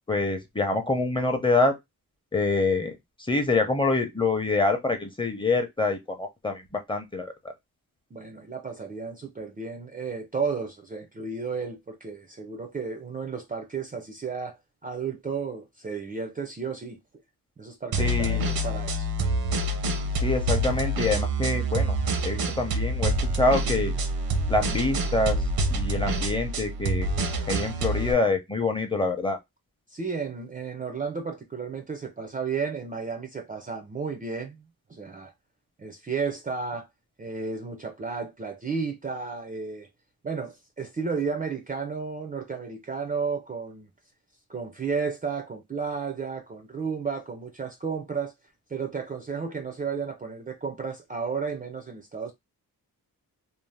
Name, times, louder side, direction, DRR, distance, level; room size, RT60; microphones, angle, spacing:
voice 1, 0.1-1.7 2.3-2.9 3.3-7.3 18.0-18.5 20.2-22.0 22.2-23.9 24.5-25.4 25.7-27.1 27.5-29.4, left 3 dB, 15° left, 0.6 m, -26 dB
voice 2, 8.1-17.0 17.6-19.1 29.9-35.3 35.8-36.9 37.2-39.9 40.2-43.9 44.5-48.3 48.7-52.3, right 5 dB, 25° right, 0.4 m, -33 dB
sound 1, 17.9-28.1, right 1 dB, 75° right, 0.7 m, -27 dB
2.7 x 2.0 x 3.2 m
wide cardioid pair, 115°, 35 cm